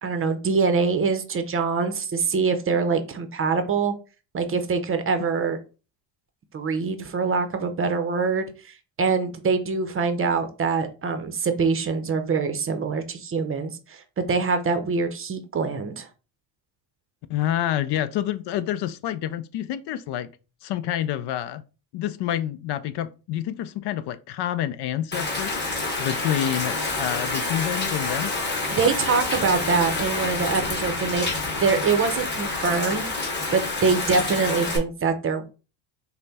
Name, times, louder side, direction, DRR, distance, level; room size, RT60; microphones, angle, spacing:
voice 1, 0.0-3.9 4.3-5.6 6.5-16.1 28.8-31.3 31.6-35.5, right 4 dB, 30° right, 0.6 m, -24 dB
voice 2, 17.3-20.3 20.6-21.6 21.9-25.5 26.0-28.3, left 11 dB, 60° left, 0.5 m, -28 dB
Rain, 25.1-34.8, left 3 dB, 20° left, 1.3 m, -28 dB
5.5 x 2.2 x 4.0 m
cardioid pair, 130°, 46 cm